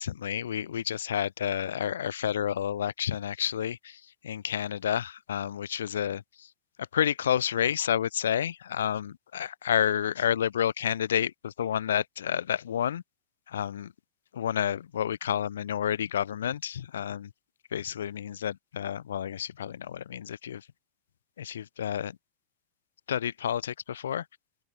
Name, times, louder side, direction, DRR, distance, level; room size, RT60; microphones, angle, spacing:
voice 1, 0.0-6.2 6.9-13.0 13.5-13.9 14.3-17.3 17.7-20.7 21.4-22.2 23.1-24.3, left 9 dB, 65° left, 0.3 m, -30 dB
open air
figure-of-eight pair, 90°, 0 cm